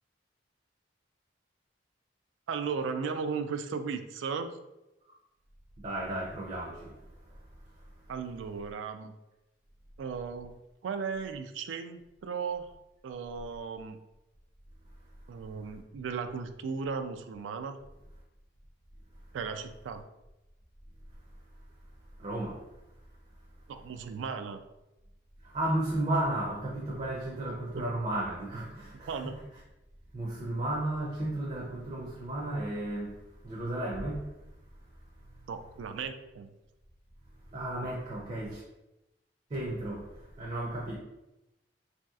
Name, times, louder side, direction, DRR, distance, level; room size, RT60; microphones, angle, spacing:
voice 1, 2.5-4.5 8.1-9.1 10.0-10.5 10.8-12.7 13.0-14.0 15.3-17.8 19.3-20.0 23.7-24.6 29.1-29.3 35.5-36.5, right 5 dB, 90° right, 0.3 m, -36 dB
voice 2, 5.8-6.9 22.2-22.6 25.4-29.4 30.1-33.1 33.4-34.3 37.5-38.6 39.5-40.1 40.4-41.0, right 1 dB, 35° right, 0.5 m, -33 dB
3.0 x 2.8 x 2.3 m
head